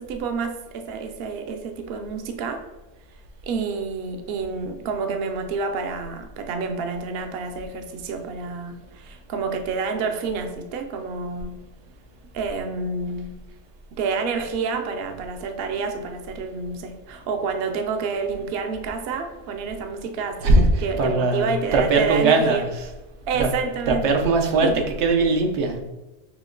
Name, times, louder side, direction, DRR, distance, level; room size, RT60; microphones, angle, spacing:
voice 1, 0.0-2.6 3.4-11.6 12.3-13.3 13.9-22.7 23.3-24.2 24.6-24.8, right 4 dB, 65° right, 6 dB, 0.7 m, -29 dB
voice 2, 21.0-22.7 23.4-23.5 23.9-25.8, right 3 dB, 90° right, 3 dB, 1.0 m, -20 dB
5.9 x 2.1 x 3.8 m, 1.1 s
omnidirectional pair, 1.1 m